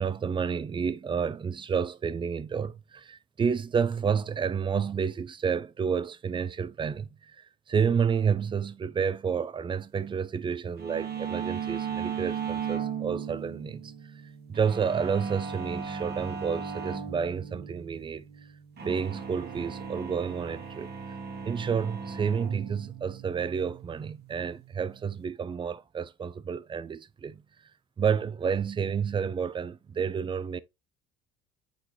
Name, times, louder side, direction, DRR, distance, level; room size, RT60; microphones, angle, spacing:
voice 1, 0.0-13.9 14.5-18.3 18.8-20.9 21.4-27.4 28.0-30.6, right 6 dB, 15° right, 0.4 m, -30 dB
sound 1, 10.8-25.2, right 6 dB, 30° right, 1.2 m, -37 dB
4.5 x 3.8 x 2.9 m
hypercardioid pair, 70°, 31 cm